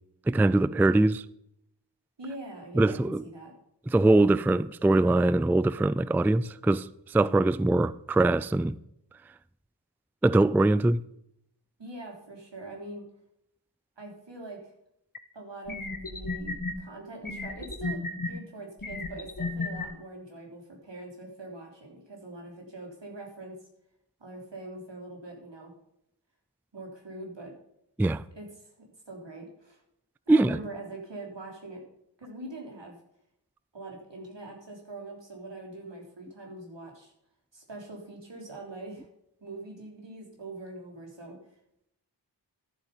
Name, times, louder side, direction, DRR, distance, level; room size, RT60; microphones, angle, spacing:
voice 1, 0.3-1.2 2.8-3.2 3.9-8.8 10.2-11.0 28.0-28.2 30.3-30.6, right 2 dB, 5° right, 0.3 m, -22 dB
voice 2, 2.2-3.5 11.8-13.0 14.0-14.7 15.3-18.0 18.3-23.5 24.2-25.7 26.7-27.5 28.3-28.7 29.1-29.8 30.3-31.8 32.2-33.0 33.7-37.1 37.5-39.1 39.4-41.4, right 2 dB, 80° right, 3.6 m, -43 dB
sound 1, 15.1-15.2 15.7-16.7 17.2-18.3 18.8-19.9, left 3 dB, 50° left, 1.7 m, -33 dB
11.5 x 7.3 x 5.4 m
wide cardioid pair, 65°, 43 cm